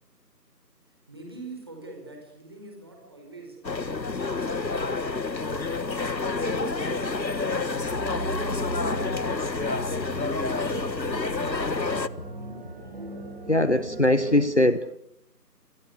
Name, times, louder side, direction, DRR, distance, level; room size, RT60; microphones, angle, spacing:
voice 1, 0.9-3.6 4.1-5.2 6.3-9.9, right 3 dB, 15° right, 1 dB, 4.7 m, -45 dB
sound 1, 3.6-12.1, left 3 dB, 85° left, 1.7 m, -28 dB
sound 2, 7.6-14.4, right 2 dB, 35° right, 5.7 m, -38 dB
voice 2, 13.5-15.0, left 1 dB, 45° left, 14 dB, 1.1 m, -21 dB
28.0 x 27.5 x 6.7 m, 0.72 s
figure-of-eight pair, 175°, 50 cm